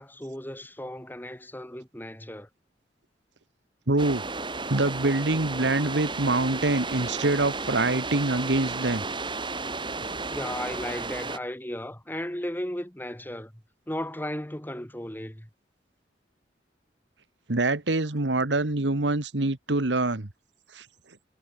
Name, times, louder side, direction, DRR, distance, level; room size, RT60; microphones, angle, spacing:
voice 1, 0.0-2.5 10.3-13.5 13.9-15.5, left 1 dB, 10° left, 3.3 m, -35 dB
voice 2, 3.9-4.2 4.7-9.0 17.5-20.3 20.7-20.8, right 2 dB, 90° right, 1.7 m, -25 dB
sound 1, 4.0-11.4, right 3 dB, 25° right, 4.0 m, -33 dB
head